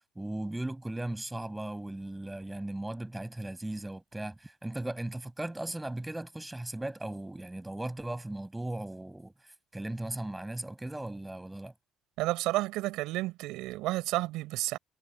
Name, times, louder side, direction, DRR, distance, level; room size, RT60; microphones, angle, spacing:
voice 1, 0.1-9.3 9.7-11.7, right 1 dB, 10° right, 7.8 m, -37 dB
voice 2, 12.2-14.8, right 18 dB, 75° right, 5.2 m, -31 dB
supercardioid pair, 70°, 0 cm